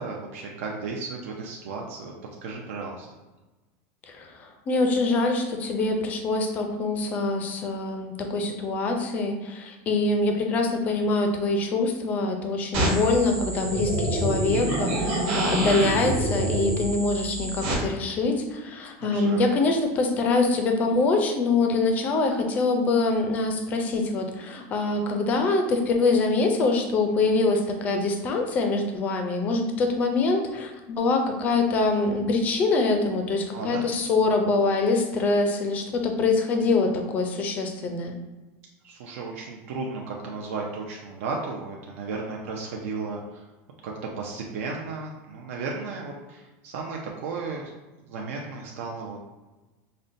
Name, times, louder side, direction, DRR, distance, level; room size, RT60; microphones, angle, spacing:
voice 1, 0.0-2.1 2.4-3.1 19.0-19.4 33.5-33.8 38.8-43.5 43.8-47.7 48.1-49.2, right 4 dB, 85° right, -1 dB, 0.5 m, -34 dB
voice 2, 4.7-38.1, left 3 dB, 20° left, 4 dB, 0.4 m, -24 dB
sound 1, 12.7-17.7, right 1 dB, 60° right, 1.2 m, -27 dB
5.3 x 2.1 x 2.5 m, 1.1 s
supercardioid pair, 175°, 7 cm